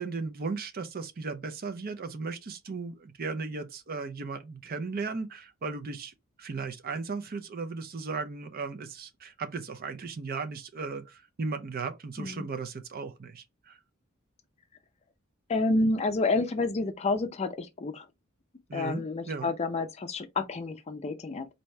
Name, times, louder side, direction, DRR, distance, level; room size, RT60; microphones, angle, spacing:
voice 1, 0.0-6.1 6.4-13.8 18.7-19.5, right 4 dB, 45° right, 0.5 m, -36 dB
voice 2, 15.5-18.1 18.7-21.5, left 2 dB, 30° left, 0.4 m, -29 dB
4.3 x 2.7 x 3.2 m
head